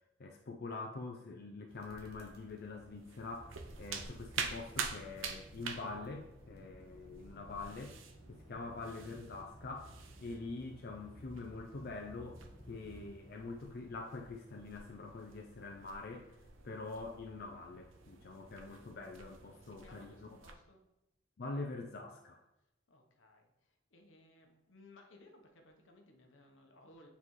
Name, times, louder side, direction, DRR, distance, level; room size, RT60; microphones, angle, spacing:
voice 1, 0.2-8.0 8.3-12.4 12.7-16.3 16.6-20.1 21.4-22.4, left 3 dB, 50° left, 2 dB, 0.5 m, -45 dB
sound 1, 1.7-20.5, right 5 dB, 80° right, 0.6 m, -48 dB
sound 2, 1.8-3.1 3.4-5.0 5.4-6.7 7.2-8.4, equal, 55° right, 1.1 m, -65 dB
sound 3, 3.4-13.1, equal, 25° left, 1.1 m, -56 dB
voice 2, 19.5-20.8 22.9-27.1, left 2 dB, 75° left, 3 dB, 1.0 m, -61 dB
7.4 x 4.1 x 3.1 m, 0.89 s
head